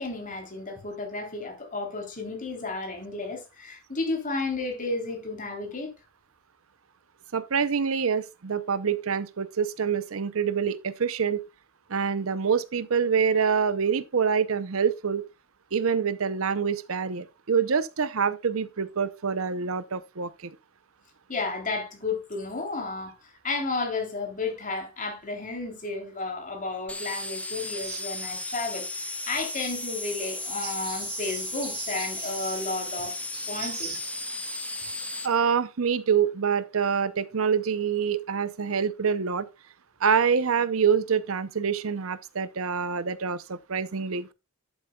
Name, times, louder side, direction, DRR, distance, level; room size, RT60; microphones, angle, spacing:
voice 1, 0.0-5.9 21.3-33.2 33.5-34.0, left 3 dB, 40° left, 3.4 m, -32 dB
voice 2, 7.3-11.4 11.9-15.3 15.7-20.5 27.9-28.0 35.2-39.5 40.0-44.3, right 6 dB, 70° right, 0.7 m, -26 dB
sound 1, 26.9-35.3, left 2 dB, 5° left, 0.9 m, -35 dB
sound 2, 30.4-35.4, right 7 dB, 45° right, 2.5 m, -42 dB
11.5 x 8.1 x 2.3 m
head